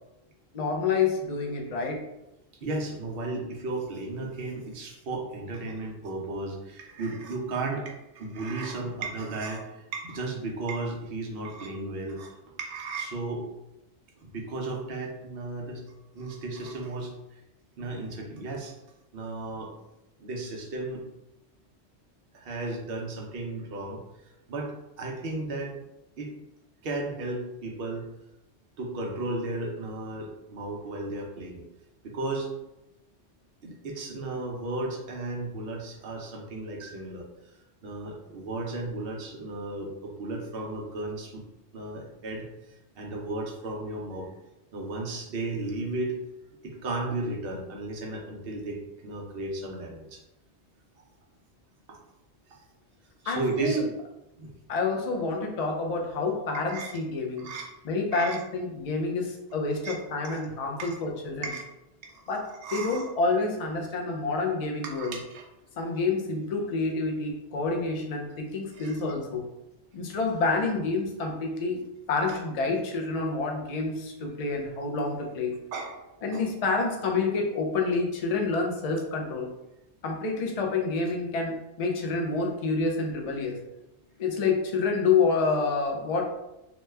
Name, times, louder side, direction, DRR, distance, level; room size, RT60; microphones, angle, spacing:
voice 1, 0.5-2.0 53.3-53.8 54.7-57.5 57.8-61.5 62.3-62.4 62.7-65.1 65.8-69.5 69.9-71.8 72.1-75.5 76.2-79.5 80.0-83.6 84.2-86.3, left 4 dB, 50° left, 1 dB, 0.4 m, -28 dB
voice 2, 2.6-9.6 9.9-12.3 12.6-13.4 14.2-15.8 16.1-17.1 17.8-18.7 19.1-19.7 20.2-21.0 22.3-24.0 24.5-25.8 26.2-26.3 26.8-28.0 28.8-31.6 32.0-32.5 33.6-37.3 37.8-41.4 41.7-42.5 43.0-44.3 44.7-46.2 46.6-50.2 51.9-52.0 53.2-53.8 54.4-54.5 56.5-56.9 57.4-57.7 58.1-58.4 59.8-60.0 60.2-60.4 60.8-61.0 61.4-61.6 62.1-63.1 64.8-65.5 68.7-69.0 75.7-76.4, right 2 dB, 60° right, 0 dB, 0.8 m, -34 dB
2.9 x 2.2 x 3.2 m, 0.90 s
omnidirectional pair, 1.2 m